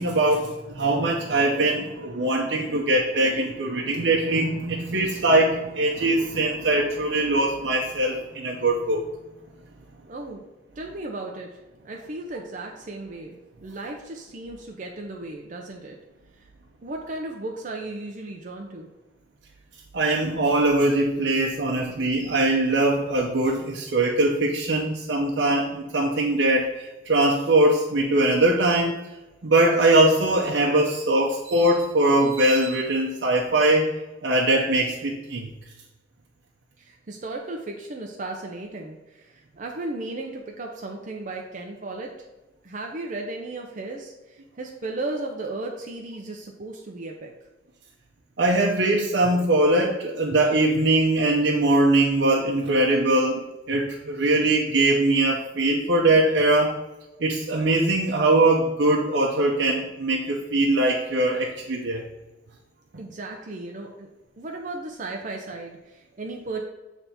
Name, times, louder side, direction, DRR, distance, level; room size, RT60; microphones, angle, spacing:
voice 1, 0.0-9.0 19.9-28.9 29.4-33.9 34.2-35.5 48.4-53.4 53.7-56.8 57.2-62.0, right 2 dB, 80° right, -2 dB, 0.8 m, -21 dB
voice 2, 10.1-10.4 10.8-11.5 11.8-16.0 16.8-18.9 36.8-42.3 42.6-47.3 63.0-64.1 64.4-66.6, right 2 dB, 45° right, 1 dB, 0.6 m, -35 dB
7.2 x 3.4 x 4.2 m, 1.1 s
head